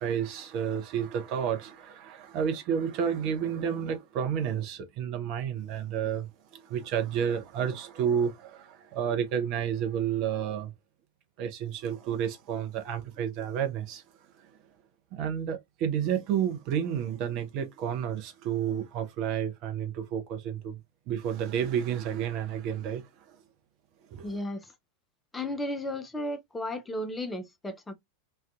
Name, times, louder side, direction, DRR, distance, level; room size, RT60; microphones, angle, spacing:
voice 1, 0.0-10.7 11.4-14.0 14.3-14.5 15.1-20.8 21.1-23.4 24.1-24.4, right 8 dB, 40° right, 0.6 m, -31 dB
voice 2, 24.2-24.7 25.3-27.9, left 1 dB, 10° left, 0.4 m, -34 dB
2.5 x 2.2 x 2.3 m
figure-of-eight pair, 90°, 0 cm